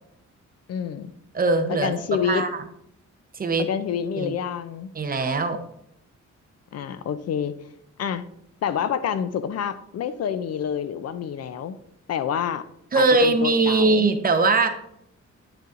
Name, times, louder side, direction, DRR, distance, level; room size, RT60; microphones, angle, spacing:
voice 1, 0.7-1.1 1.7-2.5 3.6-4.9 6.7-7.5 8.0-8.3 8.6-11.8 12.1-12.6 13.0-14.1, left 8 dB, 55° left, 12 dB, 0.5 m, -28 dB
voice 2, 1.3-1.9 2.2-2.6 3.3-3.7 4.2-4.3 5.0-5.6 12.9-14.7, right 3 dB, 30° right, 7 dB, 0.7 m, -21 dB
9.6 x 6.6 x 2.5 m, 0.75 s
cardioid pair, 140°, 30 cm